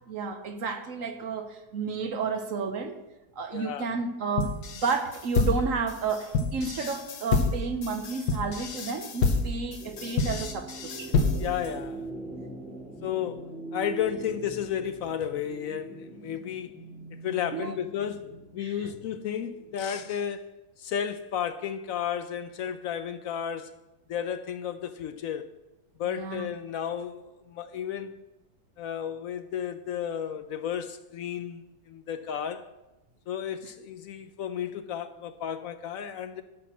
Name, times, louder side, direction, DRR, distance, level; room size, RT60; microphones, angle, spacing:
voice 1, 0.1-2.9 3.4-10.7 11.0-11.1 17.5-17.7 18.6-18.7 26.1-26.5, right 5 dB, 60° right, 1.2 m, -31 dB
voice 2, 3.5-3.9 11.4-12.1 13.0-13.4 13.7-16.8 17.2-23.7 24.1-25.5 26.0-28.2 28.8-32.7 33.3-36.4, left 9 dB, 70° left, 0.9 m, -33 dB
sound 1, 4.4-11.7, left 3 dB, 90° left, 1.6 m, -27 dB
sound 2, 9.8-20.2, right 2 dB, ahead, 1.3 m, -43 dB
11.0 x 6.0 x 6.1 m
omnidirectional pair, 1.7 m